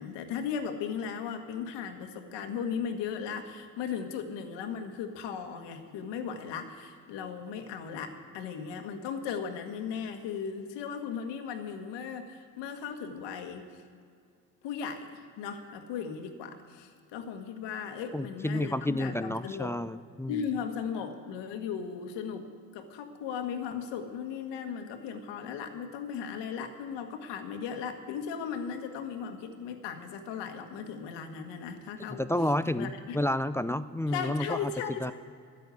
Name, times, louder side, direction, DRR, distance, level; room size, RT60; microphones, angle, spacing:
voice 1, 0.0-13.8 14.6-19.7 20.3-22.5 22.7-32.2 32.7-33.2 34.1-35.1, left 7 dB, 70° left, 6 dB, 1.6 m, -37 dB
voice 2, 18.1-20.5 32.1-34.7 35.0-35.1, left 1 dB, 5° left, 14 dB, 0.3 m, -30 dB
14.0 x 9.3 x 8.1 m, 2.3 s
hypercardioid pair, 60°, 43 cm